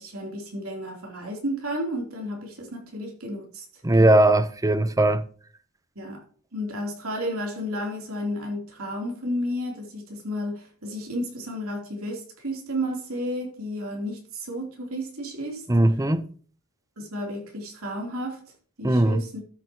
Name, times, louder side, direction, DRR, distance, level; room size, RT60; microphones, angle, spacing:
voice 1, 0.0-3.6 3.9-4.3 5.9-6.2 6.5-15.7 17.0-18.4 18.8-19.4, equal, 70° right, 3.5 m, -32 dB
voice 2, 3.8-5.2 15.7-16.2 18.8-19.2, right 1 dB, 15° right, 0.7 m, -19 dB
13.5 x 8.5 x 3.0 m
head